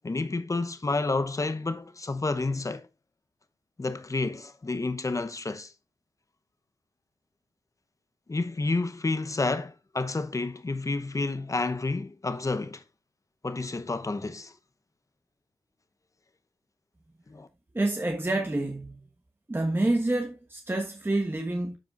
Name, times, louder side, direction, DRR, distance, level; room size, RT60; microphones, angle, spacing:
voice 1, 0.0-2.8 3.8-5.7 8.3-12.8 13.4-14.5 17.3-17.5, left 3 dB, 35° left, 1.0 m, -30 dB
voice 2, 17.7-19.0 19.5-21.8, right 2 dB, 20° right, 1.3 m, -28 dB
13.5 x 4.8 x 2.5 m
cardioid pair, 45°, 10 cm